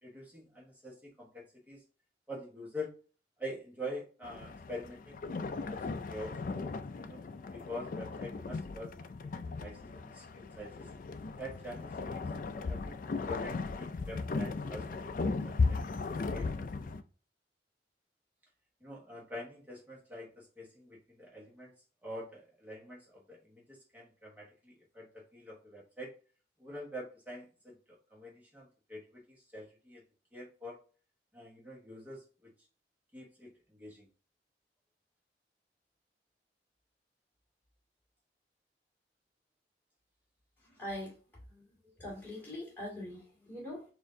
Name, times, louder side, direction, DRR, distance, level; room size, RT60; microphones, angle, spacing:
voice 1, 0.0-1.8 2.3-3.0 3.4-5.4 5.7-7.2 7.5-10.9 11.4-12.2 12.6-12.9 13.2-15.8 16.3-16.5 18.8-21.7 22.0-26.1 26.6-30.0 30.3-30.8 31.3-32.5 33.1-34.1, equal, 10° right, -3 dB, 1.2 m, -46 dB
sound 1, 4.2-17.0, left 4 dB, 50° left, 0.3 m, -37 dB
voice 2, 40.6-41.2 41.5-41.6 42.0-43.8, left 1 dB, 10° left, -6 dB, 2.2 m, -42 dB
4.4 x 2.6 x 3.6 m, 0.38 s
head